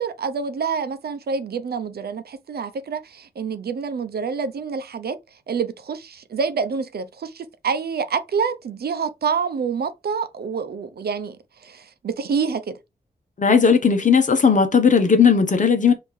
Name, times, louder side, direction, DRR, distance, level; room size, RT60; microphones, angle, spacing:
voice 1, 0.0-5.2 5.5-11.4 11.6-12.8, right 5 dB, 80° right, 0.7 m, -27 dB
voice 2, 13.4-15.9, left 5 dB, 50° left, 1.0 m, -16 dB
5.4 x 2.8 x 3.2 m
wide cardioid pair, 85°, 16 cm